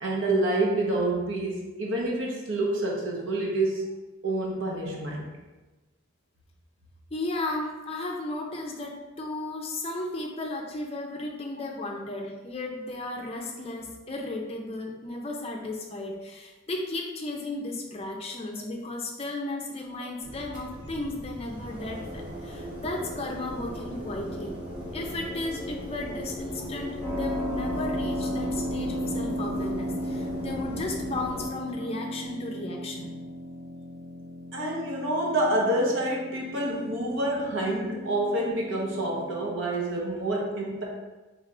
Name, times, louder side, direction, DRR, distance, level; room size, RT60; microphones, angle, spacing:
voice 1, 0.0-3.9 4.2-5.3 34.5-40.8, right 1 dB, 70° right, -2 dB, 1.0 m, -27 dB
voice 2, 7.1-24.5 24.9-33.2, left 2 dB, 30° left, 1 dB, 0.5 m, -34 dB
sound 1, 20.2-31.5, equal, 25° right, 1.2 m, -38 dB
Keyboard (musical), 27.0-39.5, equal, 5° left, 0.9 m, -35 dB
3.4 x 3.3 x 3.7 m, 1.2 s
head